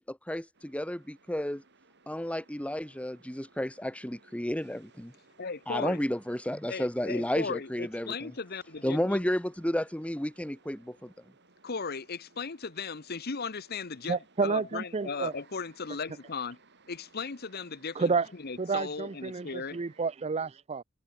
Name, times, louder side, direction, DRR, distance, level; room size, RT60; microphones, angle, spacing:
voice 1, 0.1-1.6 2.1-5.1 5.7-8.3 8.8-11.1, left 1 dB, 5° left, 1.1 m, -32 dB
sound 1, 0.5-20.1, right 3 dB, 55° right, 7.1 m, -62 dB
voice 2, 5.4-6.0 6.7-9.2 11.6-16.6 16.9-19.8, left 5 dB, 45° left, 1.0 m, -37 dB
voice 3, 14.1-15.3 18.0-18.3 18.6-20.8, right 4 dB, 30° right, 0.4 m, -30 dB
head